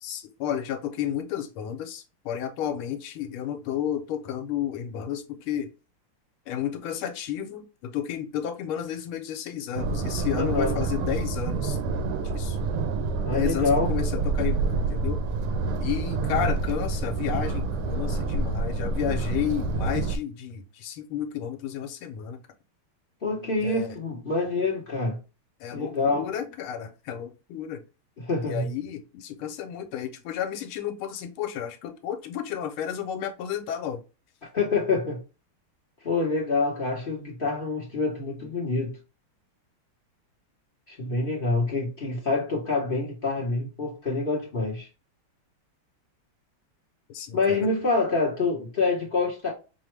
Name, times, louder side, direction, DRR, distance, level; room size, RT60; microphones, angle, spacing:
voice 1, 0.0-5.7 6.5-11.8 12.2-12.6 13.3-15.2 15.8-22.4 23.6-24.0 25.6-27.8 28.4-34.0 47.1-47.6, left 9 dB, 75° left, 1.4 m, -32 dB
sound 1, 9.8-20.2, right 3 dB, 90° right, 1.5 m, -27 dB
voice 2, 10.4-10.8 13.2-13.9 23.2-25.2 25.7-26.3 28.2-28.7 34.5-35.2 36.0-39.0 40.9-44.9 47.3-49.5, left 3 dB, 60° left, 0.5 m, -26 dB
5.4 x 2.1 x 3.1 m
omnidirectional pair, 2.4 m